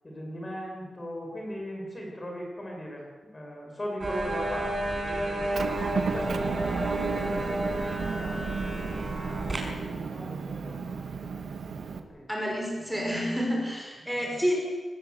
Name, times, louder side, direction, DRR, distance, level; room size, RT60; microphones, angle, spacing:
voice 1, 0.0-3.1 3.3-7.9 8.1-8.5 9.1-11.6 11.9-12.3 14.1-14.4, equal, 20° left, 0 dB, 5.8 m, -40 dB
sound 1, 4.0-9.6, right 1 dB, 25° right, 5.6 m, -31 dB
Motor vehicle (road) / Engine, 5.5-12.0, right 5 dB, 65° right, 2.0 m, -33 dB
voice 2, 12.3-14.7, equal, 5° right, -1 dB, 5.8 m, -29 dB
25.5 x 20.0 x 8.2 m, 1.4 s
wide cardioid pair, 165°, 0 cm